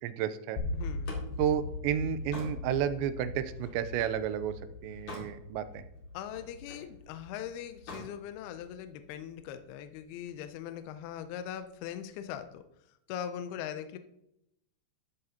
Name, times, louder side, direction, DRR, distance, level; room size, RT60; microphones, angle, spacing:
voice 1, 0.0-0.6 1.4-4.5 4.8-5.8, right 10 dB, 85° right, 12 dB, 2.9 m, -31 dB
sound 1, 0.6-10.6, left 2 dB, 65° left, 3.6 m, -41 dB
voice 2, 0.7-1.1 6.1-12.6 13.1-14.0, left 9 dB, 85° left, 9 dB, 2.2 m, -40 dB
Slam, 0.8-4.2 4.7-5.4 5.8-6.9 7.7-8.1, left 2 dB, 50° left, 3.0 m, -47 dB
13.0 x 7.8 x 2.8 m, 0.79 s
omnidirectional pair, 5.1 m